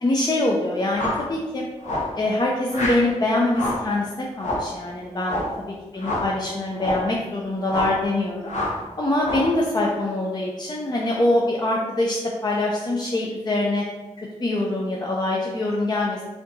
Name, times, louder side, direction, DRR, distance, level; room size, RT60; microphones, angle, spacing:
voice 1, 0.0-1.7 2.2-5.4 5.9-8.4 9.0-13.8 14.2-16.2, left 1 dB, 35° left, -2 dB, 0.5 m, -24 dB
sound 1, 0.9-1.3 1.8-2.2 2.7-3.1 3.5-3.9 4.4-4.7 5.2-5.6 6.0-6.3 6.8-7.1 7.7-8.0 8.5-8.8 9.2-9.6, left 1 dB, 70° left, 0.8 m, -27 dB
4.2 x 2.7 x 2.6 m, 1.2 s
cardioid pair, 60°, 13 cm